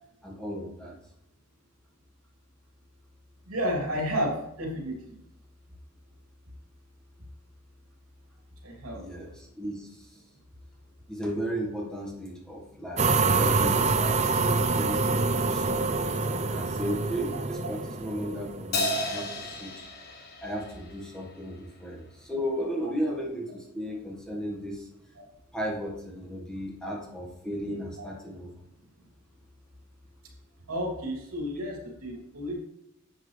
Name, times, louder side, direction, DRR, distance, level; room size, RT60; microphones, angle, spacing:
voice 1, 0.2-0.9 8.9-10.2 11.1-15.9 16.3-19.9 20.4-24.9 25.5-28.5, equal, 5° left, -3 dB, 1.5 m, -35 dB
voice 2, 3.5-4.9 8.6-9.0 28.0-28.1 30.7-32.6, equal, 80° right, -1 dB, 2.9 m, -31 dB
sound 1, 13.0-19.2, right 3 dB, 30° right, 0.5 m, -26 dB
Crash cymbal, 18.7-21.4, left 1 dB, 45° left, 1.4 m, -33 dB
11.0 x 7.6 x 3.3 m, 0.84 s
head